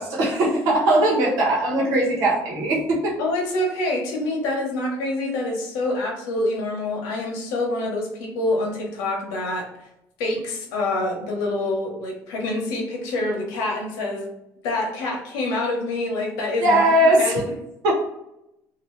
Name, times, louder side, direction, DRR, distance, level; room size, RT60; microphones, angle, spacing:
voice 1, 0.0-3.1 16.6-17.3 17.8-17.9, right 1 dB, 70° right, -3 dB, 1.1 m, -19 dB
voice 2, 3.2-9.7 10.2-14.3 14.6-17.4, left 2 dB, 85° left, 0 dB, 1.0 m, -26 dB
2.8 x 2.5 x 3.1 m, 0.85 s
cardioid pair, 175°, 6 cm